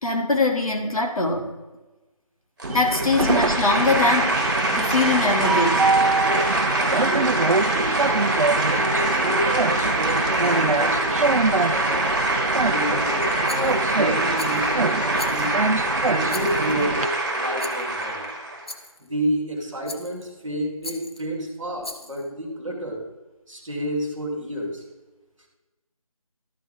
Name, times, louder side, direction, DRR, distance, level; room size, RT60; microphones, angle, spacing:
voice 1, 0.0-1.5 2.7-5.8, left 3 dB, 70° left, 2 dB, 2.0 m, -22 dB
sound 1, 2.6-18.6, right 2 dB, 30° right, 1.5 m, -24 dB
Train, 2.6-17.1, right 3 dB, 65° right, 0.6 m, -25 dB
voice 2, 6.2-15.6 16.1-18.3 19.0-23.1 23.5-24.8, equal, ahead, -15 dB, 0.8 m, -30 dB
Rattle, 13.5-14.0 14.4-14.7 15.2-15.7 16.3-16.8 17.6-17.9 18.7-19.1 19.9-20.3 20.8-21.2 21.8-22.3, left 2 dB, 45° left, 0.8 m, -39 dB
13.0 x 5.5 x 3.5 m, 1.1 s
figure-of-eight pair, 170°, 19 cm